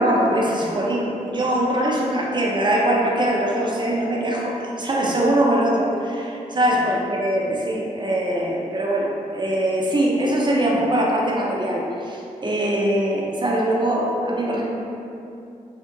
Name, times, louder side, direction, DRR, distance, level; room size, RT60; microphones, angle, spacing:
voice 1, 0.0-14.7, right 1 dB, 30° right, -3 dB, 0.6 m, -22 dB
2.5 x 2.5 x 2.5 m, 2.6 s
supercardioid pair, 40°, 15 cm